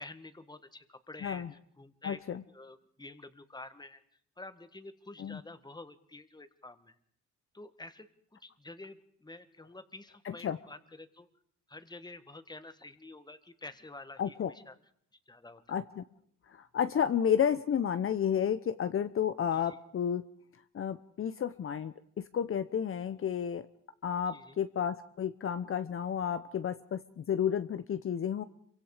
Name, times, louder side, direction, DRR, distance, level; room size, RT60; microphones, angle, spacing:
voice 1, 0.0-1.4 1.8-4.0 4.4-7.0 7.5-11.3 11.7-14.8 15.3-15.8 19.5-19.8 24.3-24.6, left 2 dB, 15° left, 11 dB, 1.8 m, -49 dB
voice 2, 2.0-2.4 5.2-5.4 10.2-10.6 14.2-14.5 15.7-16.0 16.5-20.2 20.7-23.7 24.0-28.4, left 8 dB, 45° left, 11 dB, 0.9 m, -31 dB
27.5 x 24.0 x 5.0 m, 0.66 s
cardioid pair, 90°, 30 cm